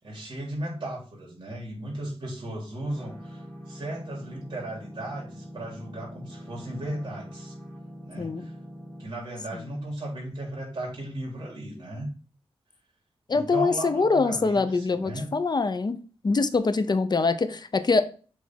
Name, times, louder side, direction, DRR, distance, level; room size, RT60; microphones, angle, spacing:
voice 1, 0.0-7.5 8.0-8.5 9.0-12.1 13.3-15.3, right 1 dB, 50° right, -3 dB, 3.3 m, -36 dB
sound 1, 2.9-9.1, equal, 5° left, 2.6 m, -43 dB
voice 2, 13.3-16.0 16.2-18.0, left 4 dB, 45° left, 11 dB, 0.8 m, -24 dB
7.2 x 3.6 x 4.5 m, 0.38 s
wide cardioid pair, 80°, 10 cm